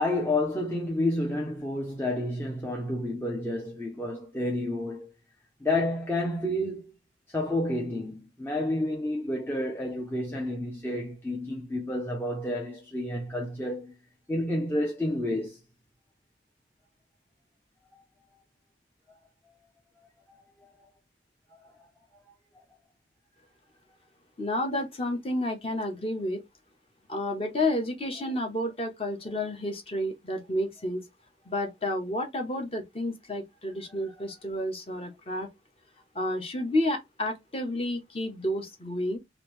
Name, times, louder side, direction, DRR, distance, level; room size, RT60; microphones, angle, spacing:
voice 1, 0.0-5.1 5.6-6.9 7.3-13.9 14.3-15.6 19.1-19.2 21.5-21.7, left 1 dB, 10° left, 0.5 m, -30 dB
voice 2, 24.4-26.4 27.1-31.0 31.4-35.5 36.1-39.2, left 1 dB, 30° left, 0.9 m, -30 dB
3.1 x 2.6 x 3.1 m
head